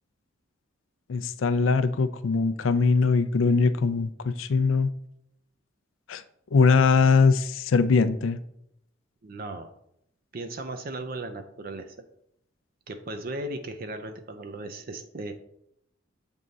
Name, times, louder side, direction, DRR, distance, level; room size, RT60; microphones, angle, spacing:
voice 1, 1.1-4.9 6.1-6.2 6.5-8.4, left 4 dB, 90° left, 12 dB, 0.4 m, -21 dB
voice 2, 9.2-9.7 10.3-12.1 12.9-15.3, right 2 dB, 50° right, 7 dB, 0.5 m, -36 dB
7.5 x 3.6 x 3.9 m, 0.75 s
head